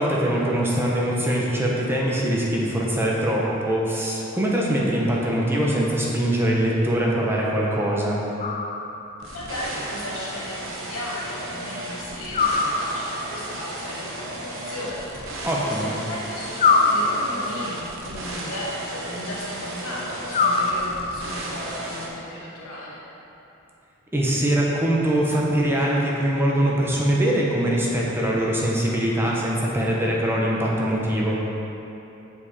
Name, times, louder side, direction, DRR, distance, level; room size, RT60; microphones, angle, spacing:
voice 1, 0.0-8.2 15.4-15.9 24.1-31.4, right 1 dB, 10° right, -4 dB, 0.9 m, -22 dB
sound 1, 8.4-9.2 12.3-13.4 16.6-17.7 20.3-21.3, left 4 dB, 35° left, 0.4 m, -23 dB
sound 2, 9.2-22.1, right 1 dB, 65° right, 1.0 m, -34 dB
voice 2, 9.3-23.0, left 1 dB, 90° left, -5 dB, 1.6 m, -36 dB
7.2 x 5.6 x 4.2 m, 2.9 s
head